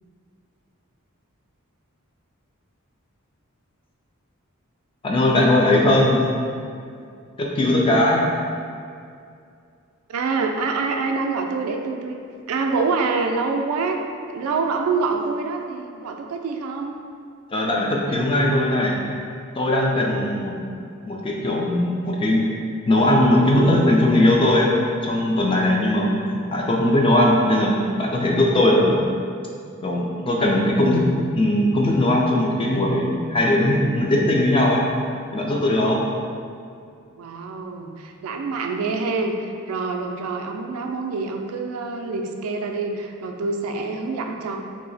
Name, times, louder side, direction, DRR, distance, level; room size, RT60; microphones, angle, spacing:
voice 1, 5.0-6.2 7.4-8.3 17.5-18.9 19.6-20.5 21.0-22.5 22.9-24.7 25.0-29.0 29.8-34.8 35.3-36.0, left 1 dB, 25° left, -2 dB, 0.4 m, -19 dB
voice 2, 10.1-12.2 12.5-14.0 14.3-16.9 37.2-44.6, right 4 dB, 90° right, 4 dB, 0.3 m, -26 dB
2.7 x 2.0 x 3.9 m, 2.3 s
head